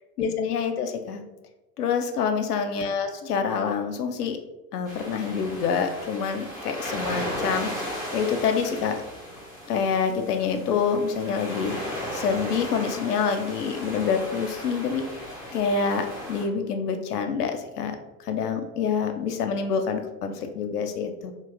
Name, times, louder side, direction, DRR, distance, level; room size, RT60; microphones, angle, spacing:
voice 1, 0.2-1.2 1.8-4.4 4.7-8.9 9.7-15.0 15.5-18.0 18.3-21.3, left 6 dB, 70° left, 6 dB, 0.5 m, -27 dB
sound 1, 4.9-16.4, equal, ahead, 0.3 m, -36 dB
2.4 x 2.0 x 3.4 m, 0.99 s
figure-of-eight pair, 80°, 50 cm